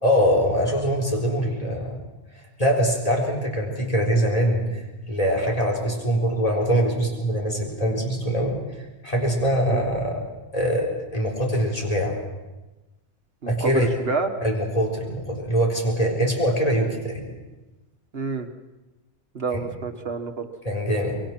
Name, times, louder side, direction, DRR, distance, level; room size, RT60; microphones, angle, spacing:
voice 1, 0.0-2.0 2.6-4.7 5.1-8.6 9.0-10.2 10.5-12.2 13.5-13.9 14.4-17.3 19.5-19.6 20.6-21.2, equal, 35° left, 0 dB, 4.1 m, -23 dB
voice 2, 13.4-14.3 18.1-18.5 19.3-20.5, right 4 dB, 65° right, 5 dB, 1.7 m, -28 dB
24.5 x 22.0 x 6.1 m, 1.1 s
omnidirectional pair, 1.1 m